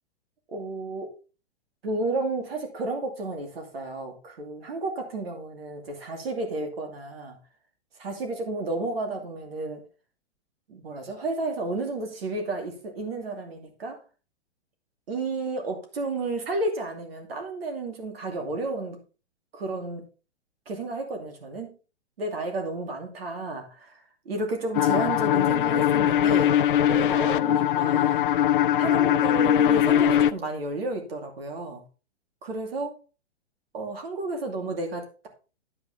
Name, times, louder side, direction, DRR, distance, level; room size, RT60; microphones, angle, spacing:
voice 1, 0.5-1.1 1.8-7.4 8.0-9.8 10.7-14.0 15.1-19.0 19.5-20.1 20.7-21.7 22.2-26.5 26.9-28.2 28.8-31.8 32.4-33.0 33.7-35.3, right 2 dB, 60° right, 4 dB, 2.6 m, -32 dB
sound 1, 24.7-30.3, left 10 dB, 50° left, 0.5 m, -21 dB
9.8 x 8.1 x 3.6 m, 0.34 s
figure-of-eight pair, 115°, 34 cm